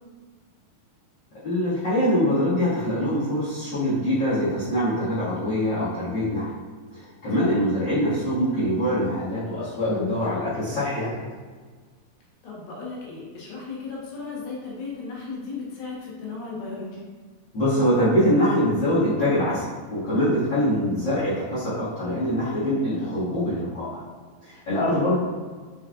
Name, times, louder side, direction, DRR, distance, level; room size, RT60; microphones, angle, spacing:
voice 1, 1.4-6.6 6.9-11.2 17.5-19.6 19.9-24.0 24.4-25.2, equal, 55° left, -15 dB, 1.2 m, -24 dB
voice 2, 12.4-17.1 20.5-20.7 24.9-25.0, left 4 dB, 70° left, -5 dB, 2.6 m, -36 dB
6.1 x 2.4 x 2.4 m, 1.5 s
omnidirectional pair, 4.2 m